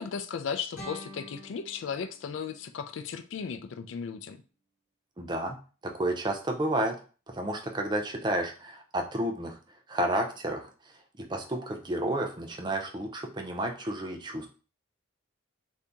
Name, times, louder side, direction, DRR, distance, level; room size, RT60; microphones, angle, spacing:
voice 1, 0.0-4.4, left 6 dB, 70° left, 8 dB, 0.4 m, -36 dB
sound 1, 0.7-3.8, equal, 40° left, 1.5 m, -48 dB
voice 2, 5.2-7.0 7.3-9.6 9.9-10.7 11.3-14.5, right 1 dB, 20° right, 3 dB, 0.5 m, -31 dB
2.8 x 2.6 x 3.5 m, 0.36 s
head